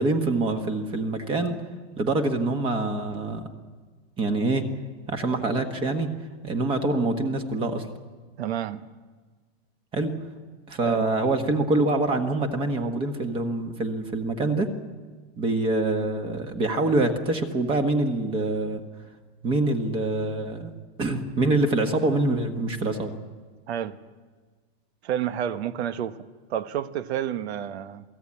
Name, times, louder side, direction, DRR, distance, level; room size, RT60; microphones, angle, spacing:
voice 1, 0.0-1.6 2.0-3.5 4.2-4.7 5.1-6.1 6.4-7.9 9.9-10.1 10.7-14.7 15.4-18.8 19.4-20.7 21.0-23.1, right 2 dB, 15° right, 6 dB, 1.2 m, -25 dB
voice 2, 8.4-8.8 10.8-11.1 23.7-24.0 25.0-28.0, right 10 dB, 80° right, 11 dB, 1.3 m, -30 dB
28.0 x 18.0 x 8.7 m, 1.4 s
supercardioid pair, 175°, 32 cm